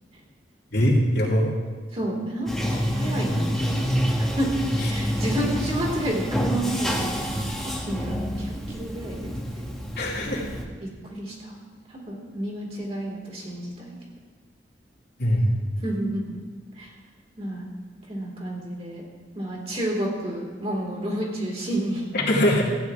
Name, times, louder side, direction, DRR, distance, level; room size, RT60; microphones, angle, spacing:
voice 1, 0.7-1.5 10.0-10.5 15.2-15.5 22.1-22.6, equal, 65° left, -5 dB, 2.7 m, -21 dB
voice 2, 1.9-3.9 4.2-4.5 4.9-9.7 11.0-11.5 11.9-14.0 15.8-16.2 16.7-16.9 17.4-17.7 18.1-19.0 19.3-22.0, right 1 dB, 35° right, -3 dB, 3.0 m, -30 dB
Bathtub (filling or washing), 2.5-10.6, equal, ahead, 1.2 m, -27 dB
15.5 x 9.1 x 3.6 m, 1.5 s
head